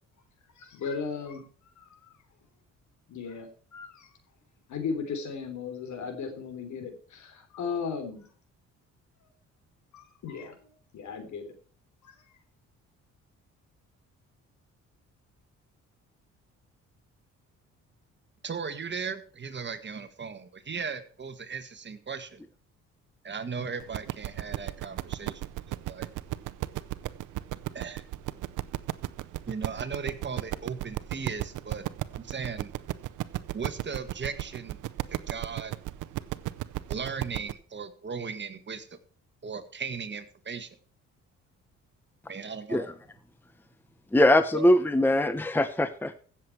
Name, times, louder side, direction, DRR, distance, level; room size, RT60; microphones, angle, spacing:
voice 1, 0.6-1.4 1.8-2.1 3.1-3.5 3.7-4.1 4.7-8.3 9.9-11.5 12.0-12.1, left 5 dB, 70° left, 7 dB, 3.6 m, -36 dB
voice 2, 18.4-22.4 23.2-25.5 25.8-26.1 27.7-28.0 29.5-31.8 32.1-32.7 33.5-34.8 35.1-35.7 36.9-38.9 39.4-40.7 42.3-42.9 44.5-44.7, right 5 dB, 35° right, 10 dB, 1.7 m, -37 dB
sound 1, 23.8-37.5, right 16 dB, 85° right, 0.7 m, -35 dB
voice 3, 44.1-46.2, left 1 dB, 5° left, 11 dB, 0.9 m, -22 dB
16.0 x 7.4 x 4.7 m, 0.43 s
cardioid pair, 90°, 30 cm